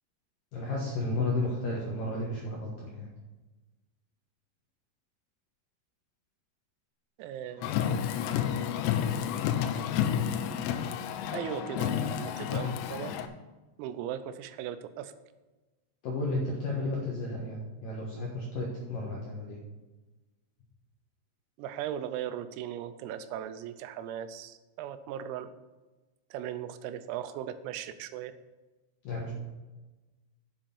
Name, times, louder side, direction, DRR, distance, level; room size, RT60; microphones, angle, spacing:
voice 1, 0.5-3.1 16.0-19.6 29.0-29.3, left 2 dB, 70° left, -3 dB, 2.1 m, -33 dB
voice 2, 7.2-7.8 11.3-13.1 13.8-15.1 21.6-25.5 26.3-28.3, right 10 dB, 90° right, 11 dB, 3.4 m, -38 dB
Car, 7.6-13.3, left 9 dB, 90° left, 3.4 m, -30 dB
7.7 x 7.6 x 7.0 m, 1.2 s
omnidirectional pair, 6.0 m